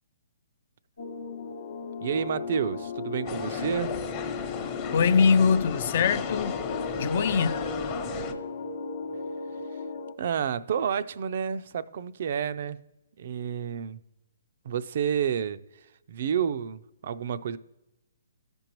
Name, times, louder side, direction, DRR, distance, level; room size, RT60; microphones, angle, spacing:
sound 1, 1.0-10.1, left 4 dB, 70° left, 0.8 m, -36 dB
voice 1, 2.0-4.0 10.2-12.8 13.2-14.0 14.6-15.6 16.1-17.6, right 8 dB, 55° right, 0.4 m, -30 dB
sound 2, 3.3-8.3, left 5 dB, 30° left, 0.8 m, -34 dB
voice 2, 4.9-6.6 7.0-7.6, left 6 dB, 50° left, 0.4 m, -22 dB
14.0 x 5.2 x 3.0 m
hypercardioid pair, 145°, 0 cm